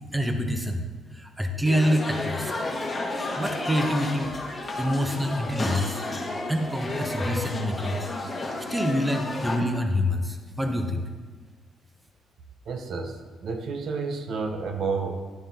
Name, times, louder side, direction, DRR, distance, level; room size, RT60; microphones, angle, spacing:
voice 1, 0.1-0.9 1.1-2.5 3.4-6.0 6.5-8.0 8.7-11.0, equal, 10° right, 5 dB, 0.8 m, -26 dB
sound 1, 1.6-9.6, left 2 dB, 25° left, 1.5 m, -32 dB
voice 2, 12.7-15.3, right 4 dB, 65° right, 5 dB, 0.8 m, -30 dB
11.5 x 7.3 x 2.8 m, 1.4 s
cardioid pair, 90°, 0 cm